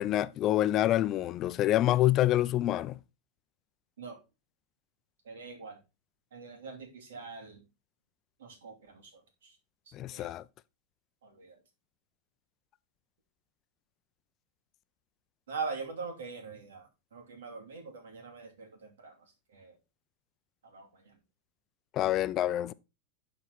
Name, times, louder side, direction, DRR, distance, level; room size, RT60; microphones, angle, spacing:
voice 1, 0.0-3.0 9.9-10.4 21.9-22.7, left 14 dB, 40° left, 0.5 m, -27 dB
voice 2, 5.2-5.8 6.3-7.6 8.4-9.6 10.1-10.3 11.2-11.6 15.5-19.1 19.5-19.8 20.6-21.2, right 4 dB, 80° right, 2.7 m, -43 dB
11.5 x 4.4 x 4.0 m
hypercardioid pair, 105°, 0 cm